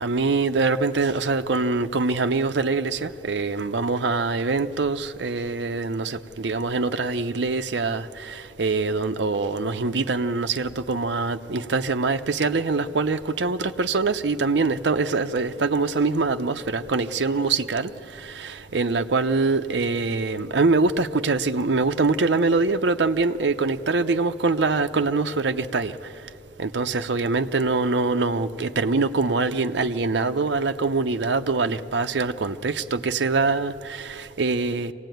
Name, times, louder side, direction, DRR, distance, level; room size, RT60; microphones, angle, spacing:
voice 1, 0.0-26.1 26.6-34.9, right 3 dB, 75° right, 0.7 m, -24 dB
24.5 x 17.5 x 9.2 m
head